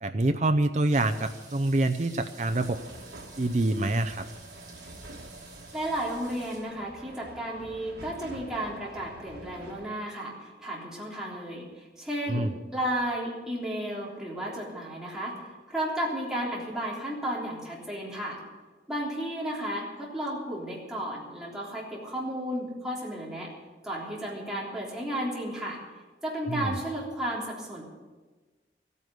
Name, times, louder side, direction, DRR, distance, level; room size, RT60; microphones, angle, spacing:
voice 1, 0.0-2.8 3.4-4.2 12.3-12.5 26.5-26.8, right 2 dB, 40° right, 8 dB, 0.6 m, -26 dB
sound 1, 0.9-6.6, right 3 dB, 25° right, 4.0 m, -50 dB
sound 2, 2.5-9.9, right 1 dB, 80° right, 1.9 m, -47 dB
voice 2, 5.7-18.4 18.9-23.5 23.8-25.8 26.2-27.8, right 1 dB, 5° right, -5 dB, 3.4 m, -33 dB
15.0 x 9.6 x 8.0 m, 1.3 s
head